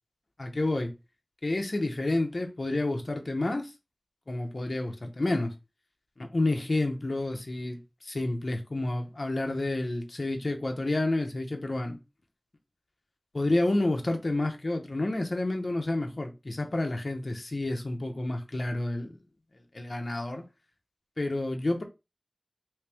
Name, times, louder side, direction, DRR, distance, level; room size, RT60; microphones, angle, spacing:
voice 1, 0.4-0.9 1.4-3.7 4.3-5.5 6.2-12.0 13.3-19.1 19.7-20.4 21.2-21.8, left 2 dB, 65° left, 0.8 m, -29 dB
3.2 x 3.1 x 3.4 m
wide cardioid pair, 55°, 0 cm